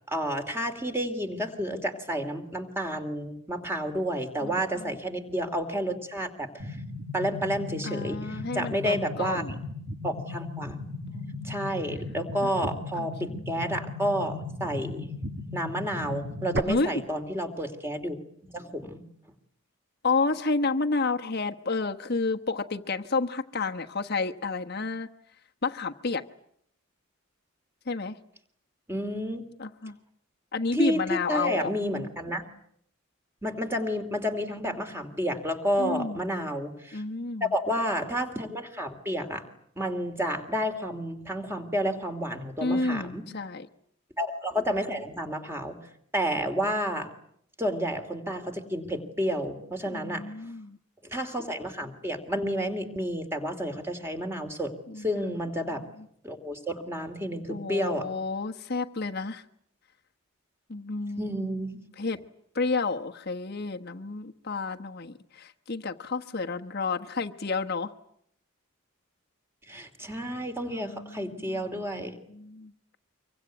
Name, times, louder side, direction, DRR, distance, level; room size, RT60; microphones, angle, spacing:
voice 1, 0.1-6.8 7.1-9.4 10.0-10.8 11.4-15.1 15.5-19.0 28.9-29.4 30.7-32.4 33.4-37.0 37.4-39.5 39.8-43.3 44.2-45.8 46.1-47.1 47.6-50.3 51.0-55.9 56.2-58.1 61.2-61.8 69.7-72.2, equal, 10° right, 6 dB, 2.9 m, -30 dB
voice 2, 4.4-4.9 7.8-9.5 11.1-11.7 12.4-12.5 13.0-13.5 16.7-17.0 20.0-25.1 25.6-26.2 27.9-28.2 29.6-29.9 30.5-31.7 35.8-36.2 36.9-37.5 42.6-43.7 49.9-50.8 54.9-55.2 57.5-59.4 60.7-61.4 62.0-62.2 62.5-67.9 70.7-71.9 72.3-72.7, left 3 dB, 50° left, 6 dB, 1.2 m, -31 dB
sound 1, 6.6-16.6, left 2 dB, 55° right, 1.8 m, -37 dB
25.5 x 24.0 x 9.2 m, 0.70 s
head